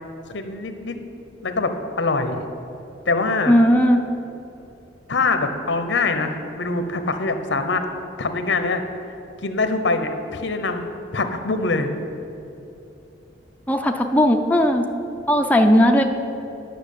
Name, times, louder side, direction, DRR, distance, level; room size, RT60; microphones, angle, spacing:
voice 1, 0.3-1.0 1.4-2.4 3.1-3.6 5.1-7.8 8.2-8.8 9.4-10.9 11.1-11.9, left 3 dB, 80° left, 8 dB, 0.9 m, -23 dB
voice 2, 3.5-4.0 13.7-14.9 15.3-16.0, equal, 10° left, 3 dB, 0.6 m, -16 dB
10.5 x 5.9 x 8.5 m, 2.9 s
head